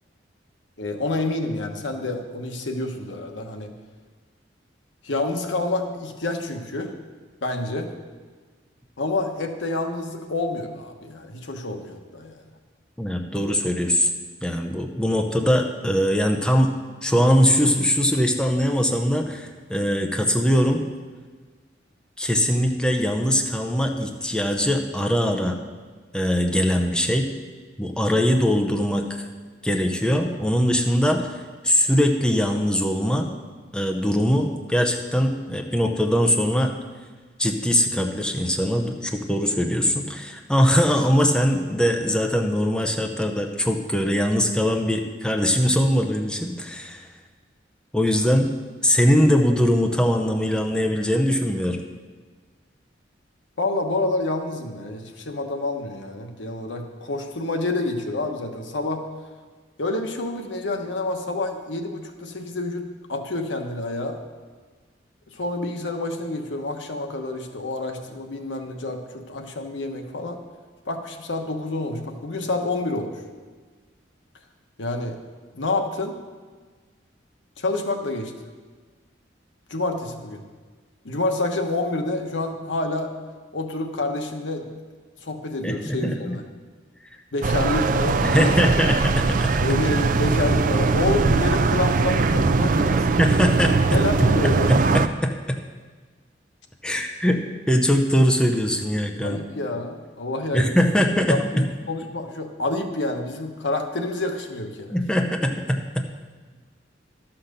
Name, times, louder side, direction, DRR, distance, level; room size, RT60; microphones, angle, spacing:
voice 1, 0.8-3.7 5.0-6.9 7.4-7.9 9.0-12.4 53.6-59.1 59.8-64.2 65.3-70.4 70.9-73.1 74.8-75.2 75.5-76.2 77.6-78.3 79.7-80.5 81.0-83.1 83.5-84.7 85.2-86.4 87.3-88.6 89.6-93.1 93.9-94.7 99.2-100.9 101.3-105.0, left 2 dB, 85° left, 4 dB, 1.1 m, -28 dB
voice 2, 13.0-14.1 14.4-16.7 17.0-20.8 22.2-25.6 26.1-27.3 27.8-29.3 29.6-33.3 33.7-36.7 37.4-47.1 47.9-48.5 48.8-51.8 85.6-86.4 88.2-89.6 93.2-94.0 94.4-95.6 96.8-97.4 97.7-99.4 100.5-101.7 104.9-106.0, equal, 5° left, 3 dB, 0.7 m, -21 dB
sound 1, 87.4-95.1, right 4 dB, 45° right, 0.4 m, -21 dB
12.0 x 5.8 x 6.7 m, 1.5 s
head